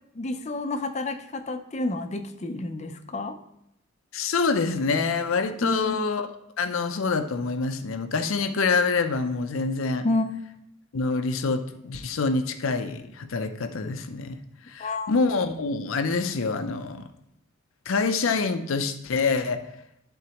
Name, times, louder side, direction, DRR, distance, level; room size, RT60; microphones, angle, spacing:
voice 1, 0.1-3.4 5.6-6.0 10.0-10.4 14.8-15.1, left 2 dB, 35° left, 8 dB, 0.5 m, -29 dB
voice 2, 4.1-6.3 6.6-10.1 10.9-14.4 14.7-17.1 17.9-19.6, left 4 dB, 85° left, 9 dB, 0.5 m, -26 dB
11.5 x 3.9 x 2.9 m, 0.79 s
head